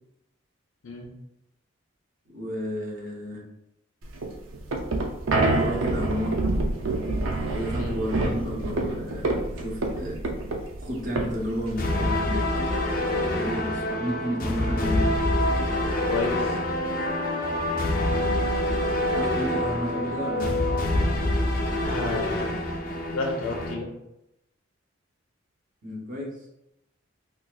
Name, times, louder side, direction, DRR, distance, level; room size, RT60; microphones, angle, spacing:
voice 1, 2.3-3.4 5.5-6.4 7.5-10.2 10.8-12.5 13.3-15.1 19.1-20.5 25.8-26.4, equal, 40° right, -3 dB, 0.8 m, -32 dB
sound 1, 4.1-12.2, right 2 dB, 75° right, 0.5 m, -27 dB
sound 2, 11.8-23.7, left 1 dB, 45° left, 0.4 m, -26 dB
voice 2, 16.1-16.6 21.8-22.5 23.1-23.9, left 3 dB, 85° left, 0 dB, 0.7 m, -31 dB
3.9 x 2.5 x 2.3 m, 0.86 s
head